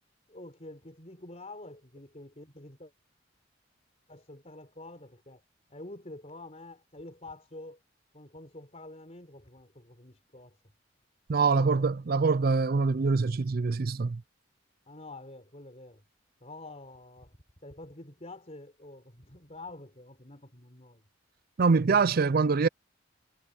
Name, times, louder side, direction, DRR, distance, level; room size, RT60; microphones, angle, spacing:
voice 1, 0.3-2.9 4.1-5.4 5.7-7.8 8.1-10.6 11.5-11.9 14.9-16.0 16.4-17.4 17.6-21.0, left 2 dB, 35° left, 4.0 m, -47 dB
voice 2, 11.3-14.2 21.6-22.7, right 4 dB, 50° right, 0.5 m, -24 dB
head